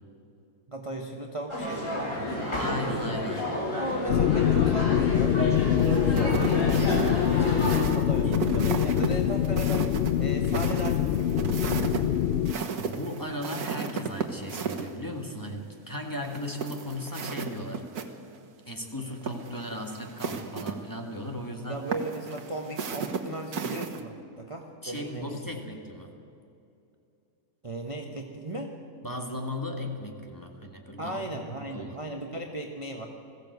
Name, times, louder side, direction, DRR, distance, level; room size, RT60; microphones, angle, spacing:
voice 1, 0.7-2.3 3.8-7.4 7.9-11.6 21.7-25.4 27.6-28.7 31.0-33.1, right 2 dB, 20° right, 2 dB, 1.2 m, -36 dB
sound 1, 1.5-7.8, left 1 dB, 50° left, 4.3 m, -31 dB
voice 2, 2.3-3.5 7.7-8.4 12.8-17.8 18.7-21.8 24.8-26.1 29.0-32.0, left 1 dB, 10° left, 2 dB, 1.9 m, -36 dB
sound 2, 4.1-12.5, left 10 dB, 75° left, 0.6 m, -24 dB
sound 3, 5.8-14.9 16.2-18.1 18.3-18.4 19.1-20.7 21.9-24.0, right 6 dB, 70° right, 1.8 m, -34 dB
21.0 x 15.5 x 8.1 m, 2.7 s
omnidirectional pair, 1.7 m